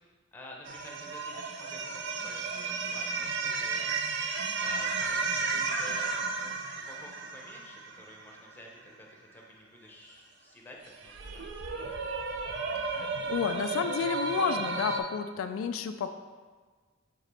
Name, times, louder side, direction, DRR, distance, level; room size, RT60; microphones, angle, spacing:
voice 1, 0.3-11.5, left 1 dB, 10° left, -1 dB, 0.8 m, -50 dB
sound 1, 0.7-8.5 11.0-15.0, right 4 dB, 60° right, 0.5 m, -33 dB
voice 2, 12.9-16.2, left 6 dB, 85° left, 9 dB, 0.3 m, -31 dB
7.4 x 3.8 x 3.3 m, 1.5 s
head